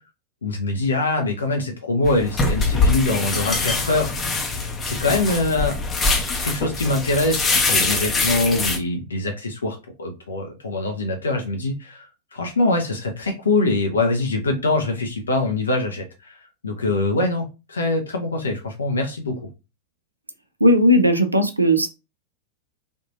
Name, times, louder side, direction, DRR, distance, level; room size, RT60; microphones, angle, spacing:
voice 1, 0.4-4.1 4.8-5.8 6.4-16.4 16.6-19.4, left 2 dB, 75° left, 3 dB, 0.7 m, -23 dB
sound 1, 2.0-8.8, left 3 dB, 20° left, 0.7 m, -23 dB
voice 2, 20.6-21.9, equal, 85° right, 8 dB, 0.5 m, -16 dB
3.5 x 2.5 x 2.7 m, 0.28 s
figure-of-eight pair, 90°, 0 cm